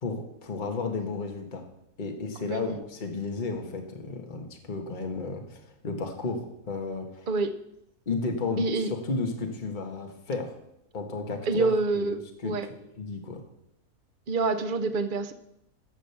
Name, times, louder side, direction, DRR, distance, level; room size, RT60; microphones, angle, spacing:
voice 1, 0.0-1.6 2.0-7.3 8.1-8.6 8.9-10.5 10.9-11.7 11.9-13.4, left 3 dB, 30° left, 3 dB, 1.4 m, -33 dB
voice 2, 2.4-2.8 7.3-7.6 8.6-8.9 11.5-12.7 14.3-15.3, right 3 dB, 45° right, 10 dB, 0.7 m, -27 dB
14.0 x 5.1 x 6.9 m, 0.83 s
omnidirectional pair, 1.7 m